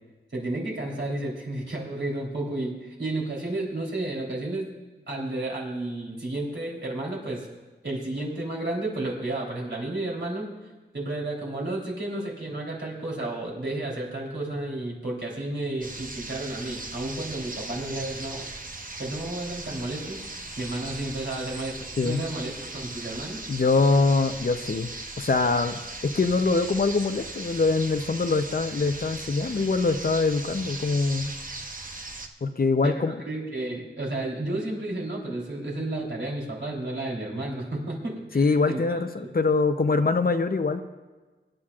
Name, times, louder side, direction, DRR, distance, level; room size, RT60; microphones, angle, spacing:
voice 1, 0.3-4.7 5.1-7.5 7.8-10.5 10.9-18.5 19.0-20.2 20.6-23.4 32.8-39.0, right 2 dB, 70° right, -3 dB, 3.5 m, -32 dB
sound 1, 15.8-32.3, right 2 dB, 45° right, 1.0 m, -38 dB
voice 2, 23.5-31.3 32.4-33.2 38.3-40.8, left 3 dB, 50° left, 9 dB, 0.7 m, -24 dB
24.0 x 10.0 x 2.5 m, 1.3 s
wide cardioid pair, 75°, 19 cm